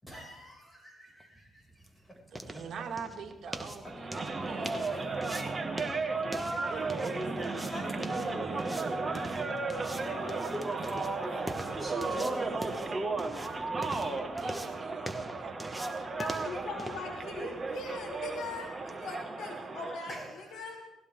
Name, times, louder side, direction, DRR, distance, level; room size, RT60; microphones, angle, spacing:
voice 1, 0.0-2.6 3.4-3.5 3.8-3.9 4.4-4.5 5.3-5.4 6.6-13.0 20.1-20.8, equal, 10° left, -1 dB, 6.5 m, -44 dB
sound 1, 1.2-19.0, right 1 dB, 5° right, 1.4 m, -45 dB
voice 2, 2.5-5.4 6.5-7.2 8.1-9.5 13.8-16.2 16.9-17.0, right 6 dB, 65° right, 3 dB, 2.0 m, -45 dB
sound 2, 3.9-20.1, right 3 dB, 25° right, 1.9 m, -34 dB
voice 3, 16.2-20.1 20.5-20.9, left 3 dB, 80° left, 0 dB, 3.5 m, -40 dB
19.0 x 16.0 x 3.8 m, 1.0 s
cardioid pair, 90°, 0 cm